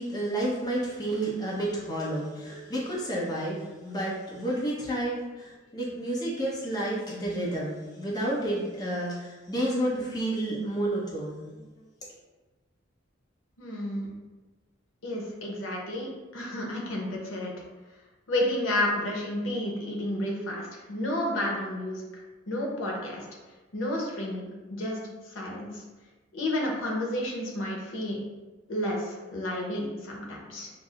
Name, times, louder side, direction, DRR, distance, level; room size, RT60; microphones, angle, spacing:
voice 1, 0.0-11.9, right 1 dB, 20° left, -6 dB, 0.7 m, -31 dB
sound 1, 1.1-3.6 3.9-4.0 4.4-4.5 4.8-4.9, right 6 dB, 75° right, 0.7 m, -44 dB
voice 2, 13.6-14.1 15.0-17.5 18.3-22.0 22.5-23.2 23.7-25.0 25.3-25.8 26.3-28.2 28.7-30.7, left 1 dB, 85° left, -1 dB, 0.8 m, -31 dB
5.9 x 2.0 x 2.4 m, 1.2 s
head